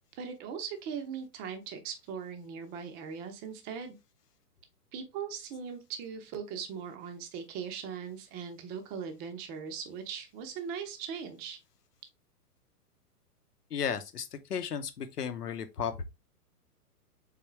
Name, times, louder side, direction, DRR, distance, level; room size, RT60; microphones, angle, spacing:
voice 1, 0.2-4.0 4.9-11.6, right 7 dB, 20° right, 0.6 m, -39 dB
voice 2, 13.7-16.0, left 7 dB, 75° left, 0.8 m, -34 dB
4.1 x 3.5 x 3.1 m
figure-of-eight pair, 115°, 47 cm